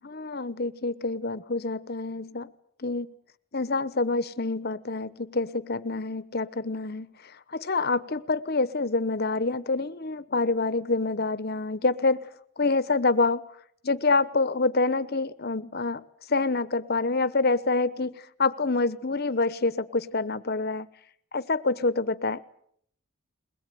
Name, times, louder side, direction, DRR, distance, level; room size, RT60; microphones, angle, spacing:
voice 1, 0.0-2.5 2.8-3.1 3.5-12.3 12.6-13.4 13.8-20.9 21.3-22.4, left 3 dB, 45° left, 15 dB, 1.0 m, -27 dB
22.0 x 20.5 x 9.3 m, 0.66 s
head